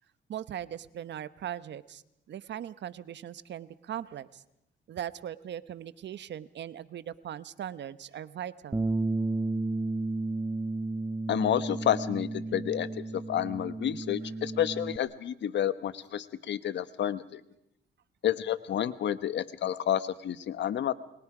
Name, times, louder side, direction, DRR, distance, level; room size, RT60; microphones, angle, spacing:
voice 1, 0.3-2.0 2.3-4.4 4.9-8.9, right 10 dB, 65° right, 15 dB, 1.1 m, -39 dB
Bass guitar, 8.7-15.0, right 2 dB, 15° right, 0.9 m, -32 dB
voice 2, 11.3-12.9 13.3-17.4 18.2-20.9, left 10 dB, 65° left, 14 dB, 1.2 m, -30 dB
29.5 x 22.5 x 5.0 m, 0.81 s
cardioid pair, 90°, 20 cm